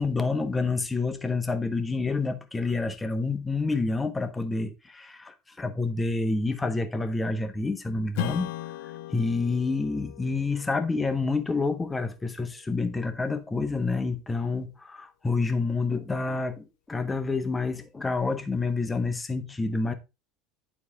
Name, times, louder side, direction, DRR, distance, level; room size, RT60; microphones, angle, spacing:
voice 1, 0.0-8.5 9.1-19.9, left 3 dB, 15° left, 1.1 m, -28 dB
Strum, 8.1-13.1, left 15 dB, 65° left, 0.5 m, -39 dB
9.6 x 4.3 x 3.6 m
figure-of-eight pair, 75°, 0 cm